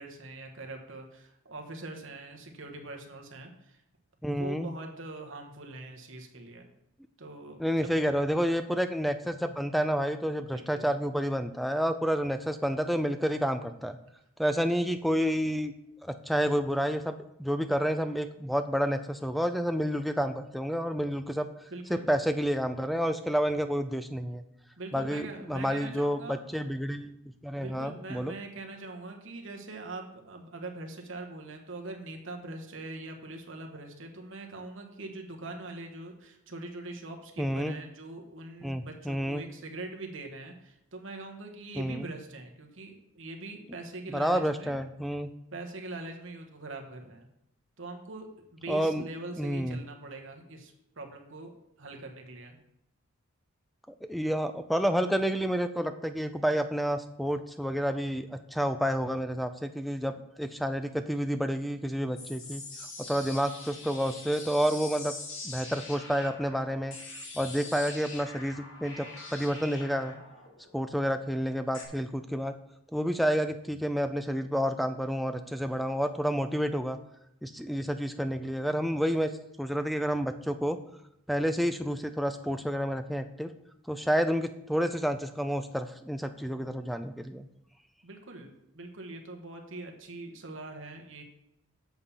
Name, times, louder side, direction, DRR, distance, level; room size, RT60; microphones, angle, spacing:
voice 1, 0.0-3.8 4.3-6.7 7.2-7.9 10.5-10.9 21.7-22.1 24.8-26.4 27.6-44.8 45.5-47.3 47.8-51.5 51.8-52.6 88.0-91.2, right 2 dB, 60° right, 3 dB, 1.3 m, -42 dB
voice 2, 4.2-4.7 7.6-14.0 14.4-15.7 16.0-21.5 21.9-24.4 24.9-27.2 27.4-28.3 37.4-37.8 38.6-39.4 41.8-42.1 44.1-45.3 48.7-49.0 49.4-49.8 54.1-60.1 60.4-62.6 63.1-65.1 65.4-67.0 67.4-70.2 70.7-72.5 72.9-77.0 77.4-79.3 79.6-80.8 81.3-83.5 83.9-87.5, equal, ahead, 9 dB, 0.3 m, -29 dB
sound 1, 62.2-71.9, left 3 dB, 65° left, 1.6 m, -44 dB
8.0 x 7.0 x 4.2 m, 0.82 s
head